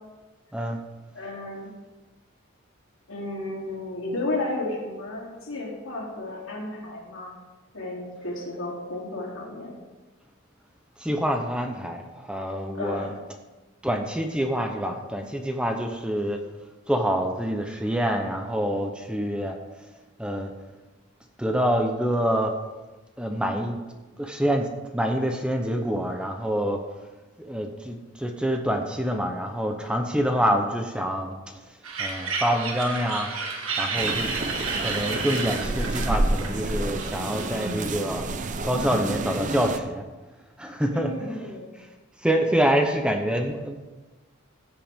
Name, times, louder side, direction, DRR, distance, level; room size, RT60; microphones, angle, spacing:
voice 1, 1.1-1.7 3.1-7.3 7.7-9.8 12.7-13.1 30.3-30.6 40.9-41.7, left 2 dB, 80° left, -3 dB, 3.2 m, -33 dB
voice 2, 11.0-13.1 13.8-16.4 16.9-19.6 20.2-20.5 21.4-22.5 23.2-23.8 24.2-24.7 24.9-26.8 27.4-31.4 32.0-33.3 33.8-34.3 34.8-38.3 38.6-40.0 40.6-41.5 42.2-43.8, equal, 5° right, 4 dB, 0.8 m, -26 dB
sound 1, 31.8-37.9, right 4 dB, 85° right, 1.7 m, -31 dB
sound 2, 33.9-39.8, right 2 dB, 40° right, 0.6 m, -29 dB
15.5 x 7.6 x 3.6 m, 1.2 s
head